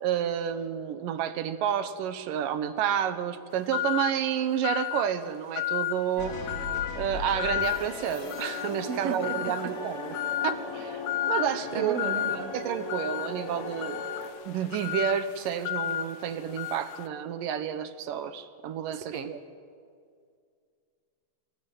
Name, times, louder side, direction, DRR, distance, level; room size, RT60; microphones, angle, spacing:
voice 1, 0.0-6.4 7.0-10.2 10.4-11.0 11.3-12.0 12.5-14.0 14.5-19.4, right 9 dB, 85° right, 11 dB, 2.8 m, -30 dB
sound 1, 3.7-4.2 4.6-5.1 5.6-6.0 6.5-6.9 7.4-7.8 8.3-8.8 9.2-9.7 10.1-10.6 11.1-11.5 12.0-12.4 12.9-17.1, left 14 dB, 85° left, 2.5 m, -32 dB
sound 2, 6.2-14.3, left 3 dB, 60° left, 3.6 m, -37 dB
voice 2, 8.9-9.4 11.7-12.5 19.1-19.3, right 6 dB, 60° right, 8 dB, 2.1 m, -33 dB
27.0 x 18.0 x 9.5 m, 2.2 s
omnidirectional pair, 3.8 m